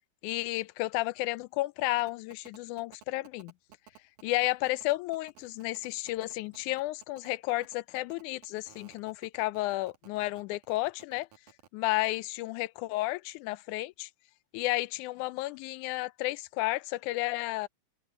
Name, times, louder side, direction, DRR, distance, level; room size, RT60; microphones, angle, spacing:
voice 1, 0.2-3.5 4.2-11.3 11.7-14.1 14.5-17.7, left 18 dB, 80° left, 2.0 m, -32 dB
sound 1, 2.0-11.7, right 9 dB, 80° right, 3.2 m, -56 dB
open air
omnidirectional pair, 3.6 m